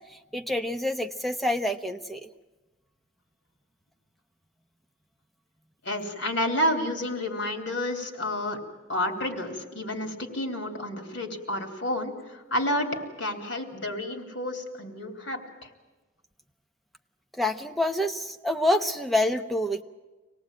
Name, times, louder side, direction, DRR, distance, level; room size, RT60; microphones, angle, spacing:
voice 1, 0.3-2.3 17.4-19.8, left 1 dB, ahead, 6 dB, 0.9 m, -27 dB
voice 2, 5.8-8.6 8.9-15.4, left 1 dB, 65° left, 4 dB, 3.4 m, -30 dB
25.5 x 18.5 x 8.9 m, 1.2 s
head